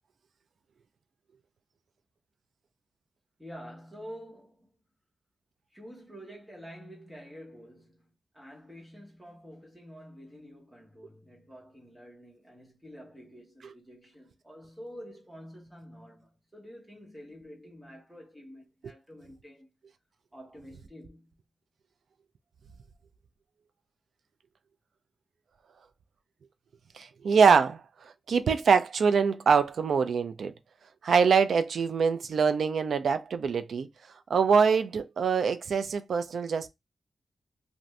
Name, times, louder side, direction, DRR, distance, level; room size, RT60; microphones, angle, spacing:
voice 1, 3.4-4.8 5.7-19.7 20.3-21.4, equal, 5° right, 1.2 m, -48 dB
voice 2, 26.9-30.5 31.0-33.9 34.3-36.7, right 6 dB, 75° right, 0.3 m, -24 dB
2.6 x 2.5 x 3.1 m
wide cardioid pair, 150°, 0 cm